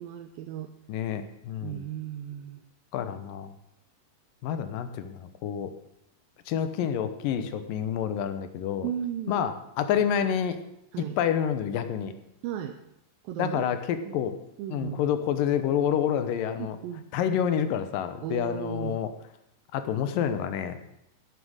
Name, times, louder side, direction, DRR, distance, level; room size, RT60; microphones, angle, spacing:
voice 1, 0.0-0.7 1.6-2.6 8.8-9.5 10.9-11.2 12.4-12.8 13.2-13.7 14.0-14.2 14.6-15.0 16.6-17.1 18.2-19.0, right 10 dB, 80° right, 7 dB, 2.3 m, -35 dB
voice 2, 0.9-1.9 2.9-3.5 4.4-5.7 6.5-8.9 9.3-10.6 11.2-12.1 13.4-14.3 14.7-16.8 17.1-19.1 19.7-20.8, left 9 dB, 70° left, 10 dB, 2.4 m, -28 dB
11.5 x 11.0 x 6.5 m, 0.81 s
omnidirectional pair, 4.4 m